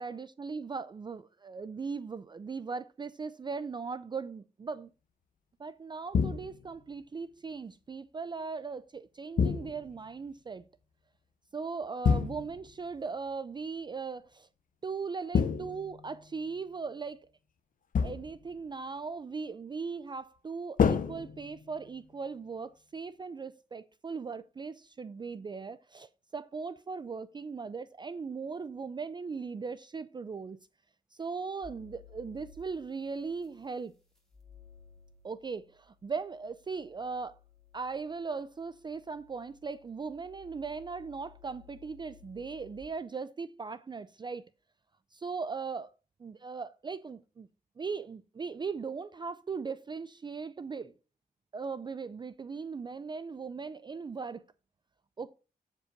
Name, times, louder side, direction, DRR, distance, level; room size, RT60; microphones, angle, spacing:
voice 1, 0.0-4.9 5.6-10.7 11.5-14.5 14.8-17.3 18.0-30.6 31.1-33.9 35.2-37.4 37.7-44.4 45.1-45.9 46.2-47.5 47.8-50.9 51.5-54.4 55.2-55.3, right 5 dB, 30° right, 0.4 m, -38 dB
sound 1, 6.1-6.8 9.4-10.0 12.0-12.7 15.3-16.3 17.9-18.5 20.8-21.9, left 6 dB, 60° left, 0.7 m, -29 dB
sound 2, 31.6-42.8, left 7 dB, 5° left, 4.1 m, -58 dB
8.3 x 5.2 x 5.1 m
cardioid pair, 95°, 16 cm